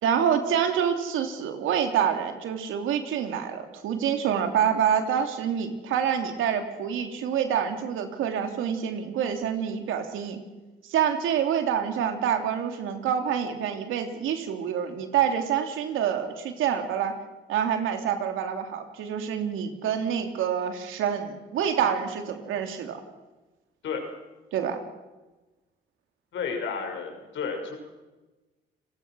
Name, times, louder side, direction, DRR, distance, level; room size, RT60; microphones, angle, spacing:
voice 1, 0.0-10.4 10.8-17.1 17.5-23.0 24.5-24.8, right 8 dB, 85° right, 6 dB, 3.0 m, -27 dB
voice 2, 26.3-27.8, left 5 dB, 70° left, 3 dB, 6.3 m, -32 dB
29.5 x 20.0 x 6.3 m, 1.2 s
cardioid pair, 90°, 20 cm